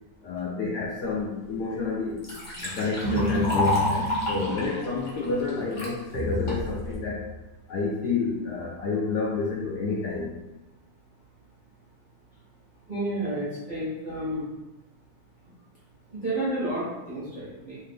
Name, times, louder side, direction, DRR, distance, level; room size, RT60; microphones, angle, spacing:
voice 1, 0.2-2.2 2.6-7.2 7.7-10.4, left 4 dB, 75° left, -4 dB, 0.9 m, -29 dB
Liquid, 1.4-1.5 1.9-5.9 6.5-6.9, left 1 dB, 55° left, 0.5 m, -30 dB
sound 1, 3.0-4.7 6.1-7.4, right 1 dB, 75° right, 1.1 m, -31 dB
voice 2, 12.9-14.5 16.1-17.8, right 1 dB, 50° right, -10 dB, 0.5 m, -31 dB
3.1 x 2.8 x 3.4 m, 1.0 s
omnidirectional pair, 2.2 m